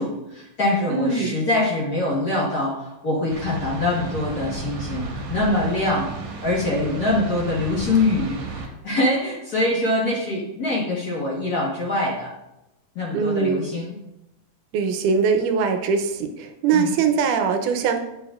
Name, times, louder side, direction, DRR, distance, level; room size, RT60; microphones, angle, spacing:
voice 1, 0.0-12.3 12.9-14.0 16.7-16.9, left 2 dB, 75° left, -5 dB, 0.8 m, -24 dB
voice 2, 0.9-1.4 13.1-13.7 14.7-18.0, right 5 dB, 80° right, 6 dB, 2.1 m, -22 dB
sound 1, 3.3-8.7, right 3 dB, 65° right, 2.2 m, -33 dB
8.1 x 7.3 x 2.4 m, 0.91 s
omnidirectional pair, 3.7 m